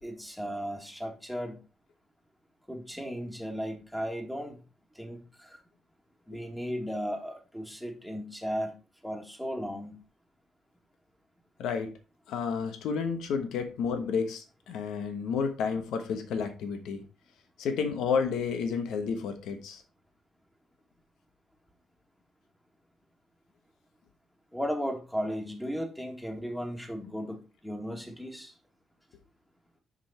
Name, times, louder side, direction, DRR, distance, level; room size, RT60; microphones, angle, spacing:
voice 1, 0.0-1.6 2.7-4.6 4.9-5.6 6.3-8.7 9.0-10.0 24.5-28.5, equal, 5° left, 3 dB, 1.9 m, -35 dB
voice 2, 11.6-11.9 12.3-17.0 17.6-19.8, left 6 dB, 85° left, 7 dB, 1.1 m, -31 dB
6.3 x 5.4 x 4.3 m, 0.32 s
cardioid pair, 90°, 0 cm